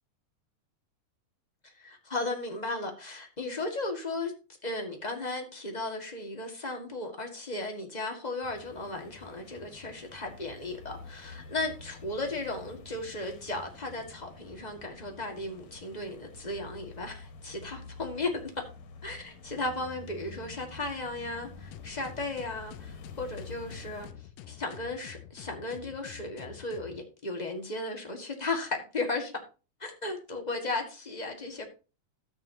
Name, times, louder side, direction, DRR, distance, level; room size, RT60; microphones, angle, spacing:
voice 1, 1.8-4.3 4.6-18.4 19.0-24.1 24.5-29.3 29.8-31.6, left 2 dB, 20° left, 1.2 m, -35 dB
sound 1, 8.4-24.1, left 4 dB, 65° left, 2.8 m, -48 dB
sound 2, 21.7-27.0, left 11 dB, 85° left, 2.3 m, -48 dB
13.0 x 8.8 x 2.8 m
omnidirectional pair, 3.6 m